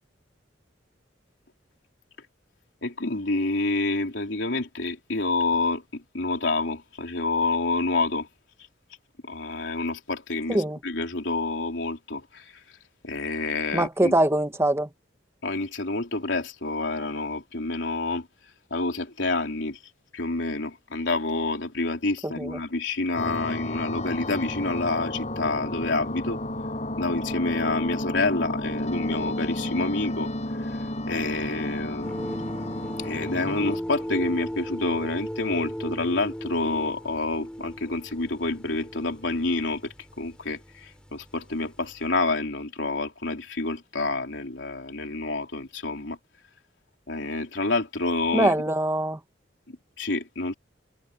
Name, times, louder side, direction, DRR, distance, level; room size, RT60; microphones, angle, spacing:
voice 1, 2.8-8.3 9.2-12.4 13.0-14.1 15.4-18.3 18.7-19.8 20.1-26.4 27.0-30.3 30.6-30.7 31.1-32.3 33.0-46.2 47.1-48.5 49.7-50.5, left 2 dB, 70° left, 3.9 m, -28 dB
voice 2, 10.5-10.8 13.7-14.9 22.2-22.6 48.3-49.2, right 1 dB, 15° right, 1.4 m, -23 dB
sound 1, 23.1-33.8, left 1 dB, 40° left, 7.7 m, -32 dB
sound 2, 32.0-42.1, equal, 5° left, 4.9 m, -37 dB
head